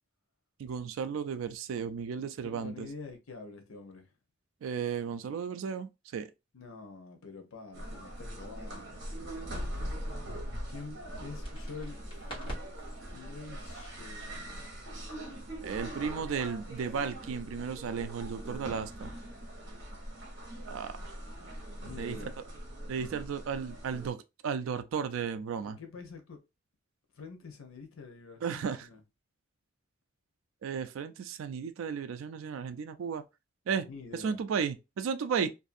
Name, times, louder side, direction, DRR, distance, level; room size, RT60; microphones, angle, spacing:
voice 1, 0.6-2.9 4.6-6.3 15.6-19.1 20.7-20.9 22.0-22.3 22.9-25.8 28.4-28.9 30.6-33.2 33.7-33.9 34.1-35.5, right 6 dB, 75° right, 0.3 m, -34 dB
voice 2, 2.4-4.1 6.5-9.1 10.7-14.7 21.8-22.4 25.6-26.4 27.1-29.0 33.7-34.4, left 4 dB, 85° left, 0.8 m, -47 dB
sound 1, 7.7-24.1, right 1 dB, 55° right, 1.0 m, -42 dB
sound 2, 11.4-19.0, right 1 dB, 25° left, 1.3 m, -49 dB
2.6 x 2.4 x 2.5 m
head